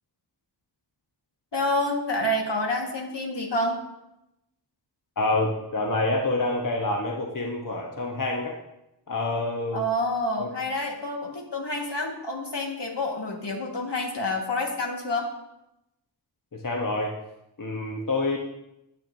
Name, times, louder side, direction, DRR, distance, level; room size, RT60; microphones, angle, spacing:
voice 1, 1.5-3.8 9.7-15.3, left 1 dB, 70° left, 0 dB, 1.7 m, -28 dB
voice 2, 5.2-8.5 9.1-9.8 10.4-10.5 16.5-17.1 17.6-18.4, left 2 dB, 45° left, 0 dB, 1.1 m, -27 dB
9.0 x 8.7 x 2.7 m, 0.88 s
cardioid pair, 45°, 44 cm